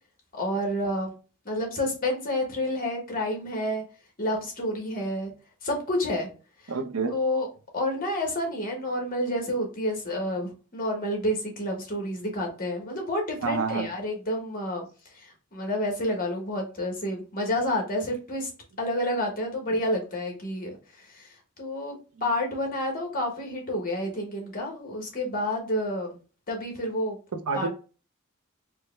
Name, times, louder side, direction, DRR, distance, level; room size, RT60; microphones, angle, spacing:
voice 1, 0.3-1.1 1.4-3.8 4.2-5.3 5.6-6.3 6.6-6.7 7.1-7.5 7.7-14.8 15.1-18.5 18.8-21.3 21.6-26.2 26.5-27.2 27.5-27.7, left 1 dB, 40° left, 1.2 m, -29 dB
voice 2, 6.7-7.1 13.4-13.9 27.3-27.7, right 4 dB, 80° right, 0.6 m, -28 dB
4.6 x 2.2 x 3.3 m
head